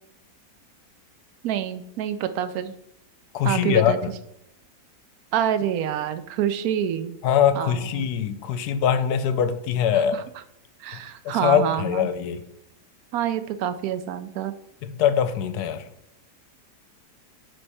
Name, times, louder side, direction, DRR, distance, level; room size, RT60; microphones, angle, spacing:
voice 1, 1.4-2.7 3.4-4.0 5.3-7.2 7.5-8.1 9.9-10.2 10.8-12.1 13.1-14.5, right 10 dB, 70° right, 12 dB, 0.9 m, -27 dB
voice 2, 3.3-3.9 7.2-10.2 11.2-12.4 14.8-15.8, left 8 dB, 75° left, 11 dB, 1.1 m, -22 dB
9.8 x 3.4 x 4.2 m, 0.77 s
omnidirectional pair, 1.9 m